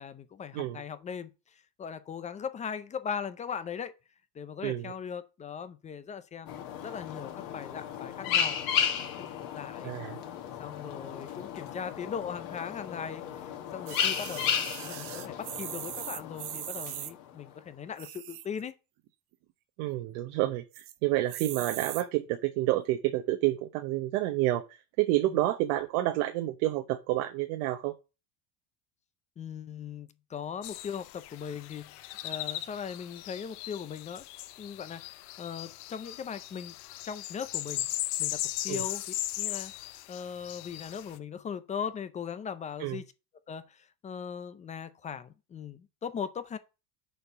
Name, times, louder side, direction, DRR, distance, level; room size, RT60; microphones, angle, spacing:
voice 1, 0.0-3.9 4.3-8.6 9.2-9.9 10.6-18.7 25.2-25.4 29.4-34.3 34.6-36.7 37.0-37.9 38.2-39.0 39.4-39.7 40.1-43.1 43.5-46.6, left 7 dB, 15° left, 0.4 m, -39 dB
voice 2, 4.6-4.9 9.8-10.2 19.8-27.9 38.7-38.8 42.8-43.0, right 15 dB, 75° right, 1.0 m, -29 dB
sound 1, 6.5-17.4, left 8 dB, 45° left, 1.7 m, -34 dB
sound 2, 13.9-17.1 17.9-18.6 19.1-19.2 19.3-19.4 19.8-20.2 20.7-20.9 21.3-22.0 22.8-22.9, right 14 dB, 50° right, 0.8 m, -40 dB
sound 3, 30.6-41.2, left 16 dB, 80° left, 0.8 m, -38 dB
6.8 x 4.4 x 6.7 m
cardioid pair, 155°, 45 cm